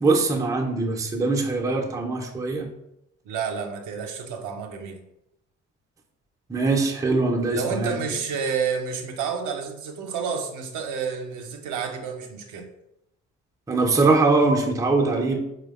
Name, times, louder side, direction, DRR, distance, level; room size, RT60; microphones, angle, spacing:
voice 1, 0.0-2.7 6.5-8.0 13.7-15.4, right 3 dB, 10° right, 2 dB, 0.4 m, -22 dB
voice 2, 3.2-5.0 7.5-12.7, right 6 dB, 55° right, 4 dB, 0.6 m, -30 dB
4.4 x 2.1 x 2.3 m, 0.84 s
figure-of-eight pair, 45°, 37 cm